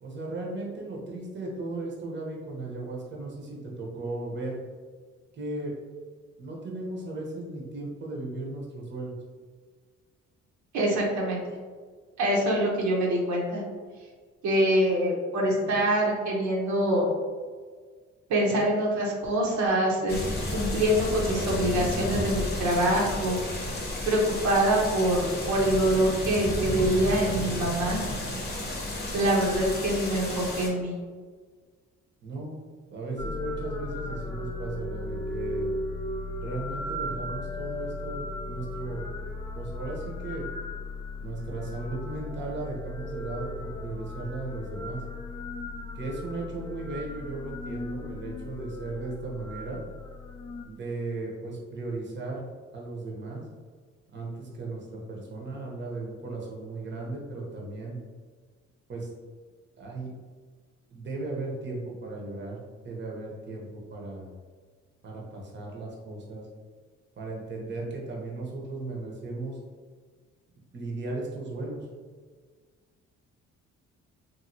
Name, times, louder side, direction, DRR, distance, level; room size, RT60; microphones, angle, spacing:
voice 1, 0.0-4.6 5.3-5.7 6.4-9.1 32.2-32.6 32.9-35.7 36.3-39.1 39.6-40.4 41.2-45.0 45.9-49.8 50.6-52.5 52.7-53.4 54.1-58.0 58.9-59.1 59.8-60.1 60.9-64.3 65.0-66.4 67.2-69.6 70.7-71.9, right 2 dB, 35° right, -2 dB, 0.7 m, -36 dB
voice 2, 10.7-11.4 12.2-13.6 14.4-17.1 18.3-20.2 20.5-23.4 24.0-28.0 29.1-30.9, right 1 dB, 70° right, -3 dB, 0.8 m, -25 dB
sound 1, 20.1-30.7, left 1 dB, 35° left, 0.7 m, -32 dB
sound 2, 33.2-50.6, left 2 dB, 15° left, 0.3 m, -36 dB
2.9 x 2.6 x 2.6 m, 1.5 s
cardioid pair, 90°, 30 cm